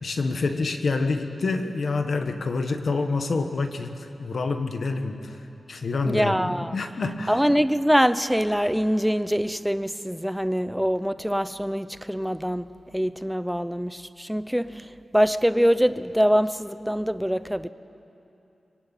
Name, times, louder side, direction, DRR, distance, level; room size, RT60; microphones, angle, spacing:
voice 1, 0.0-5.3 5.7-7.3, left 3 dB, 60° left, 1.5 m, -27 dB
voice 2, 6.0-6.8 7.3-12.7 12.9-14.9 15.1-17.7, equal, ahead, 0.6 m, -24 dB
24.5 x 23.5 x 9.2 m
wide cardioid pair, 165°, 0 cm